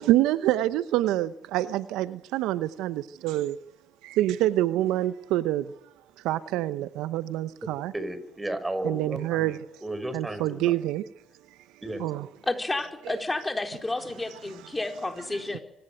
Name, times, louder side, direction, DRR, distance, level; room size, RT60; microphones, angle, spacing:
voice 1, 0.0-3.6 4.0-5.7 6.2-7.9 8.8-9.6 10.1-11.0 12.0-12.3 13.1-13.2, right 14 dB, 70° right, 0.8 m, -26 dB
voice 2, 7.9-9.5 9.8-10.7 11.8-12.0, right 1 dB, 15° right, 5.6 m, -33 dB
voice 3, 12.5-15.6, left 2 dB, 15° left, 4.3 m, -31 dB
25.0 x 18.5 x 9.3 m
hypercardioid pair, 65°, 0 cm